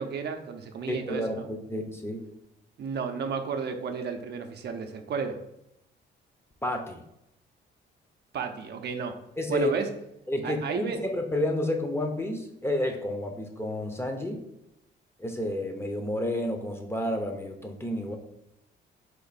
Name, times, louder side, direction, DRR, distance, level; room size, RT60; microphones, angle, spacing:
voice 1, 0.0-1.5 2.8-5.4 8.3-9.2 9.5-9.9 10.4-11.0, right 5 dB, 55° right, 5 dB, 0.6 m, -32 dB
voice 2, 0.9-2.2 6.6-7.0 9.4-9.7 10.3-14.4 15.2-18.2, left 1 dB, 10° left, 4 dB, 0.6 m, -30 dB
4.3 x 2.6 x 4.0 m, 0.81 s
cardioid pair, 90°, 20 cm